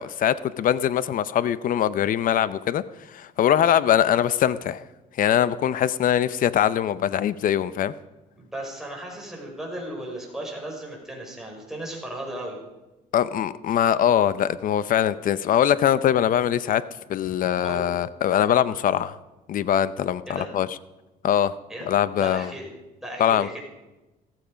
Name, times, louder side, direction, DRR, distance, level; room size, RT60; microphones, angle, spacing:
voice 1, 0.0-2.8 3.1-4.8 5.2-7.9 13.1-16.8 17.1-19.2 19.5-20.8 21.2-21.5 21.9-22.5 23.2-23.6, left 10 dB, 55° left, 16 dB, 0.7 m, -22 dB
voice 2, 8.4-12.6 17.6-17.9 20.3-20.5 21.7-21.9 22.2-22.7 23.0-23.6, right 1 dB, 5° right, -2 dB, 5.8 m, -35 dB
15.0 x 15.0 x 5.2 m, 1.1 s
cardioid pair, 110°, 17 cm